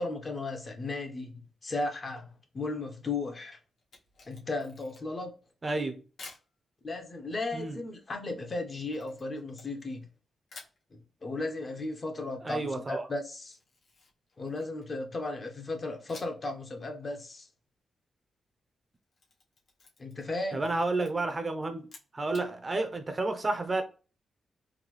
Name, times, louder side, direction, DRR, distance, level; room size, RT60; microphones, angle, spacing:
voice 1, 0.0-3.6 4.3-5.3 6.8-10.1 10.9-13.6 14.4-17.5 20.0-20.6, left 2 dB, 30° left, 0.8 m, -35 dB
Camera, 3.8-5.3 6.2-6.5 8.9-10.1 10.5-10.8 13.5-15.0 16.1-16.5 16.8-16.9 18.9-20.3 20.6-21.1 21.8-22.5, left 3 dB, 60° left, 1.4 m, -52 dB
voice 2, 5.6-6.0 7.5-7.8 12.4-13.1 20.5-21.8 22.1-23.8, right 2 dB, 25° right, 0.6 m, -31 dB
4.0 x 2.6 x 3.1 m
wide cardioid pair, 145°, 0 cm